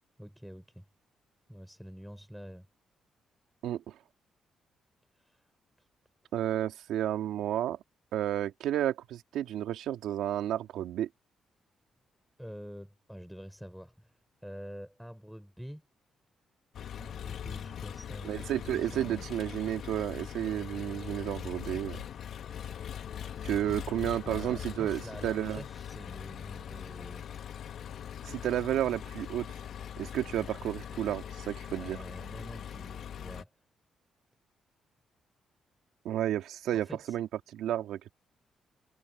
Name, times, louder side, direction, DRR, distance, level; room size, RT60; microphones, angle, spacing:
voice 1, 0.2-0.8 1.5-2.7 5.2-5.5 5.8-5.9 12.4-14.1 14.4-15.9 17.0-19.3 24.2-27.2 31.8-33.5 36.7-37.2, equal, ahead, 4.6 m, -46 dB
voice 2, 3.6-4.0 6.3-7.8 8.1-11.1 18.2-22.0 23.4-25.6 28.2-29.5 30.0-32.0 36.0-38.1, right 11 dB, 85° right, 2.4 m, -32 dB
Engine, 16.7-33.4, left 9 dB, 65° left, 1.7 m, -41 dB
cardioid pair, 90°, 0 cm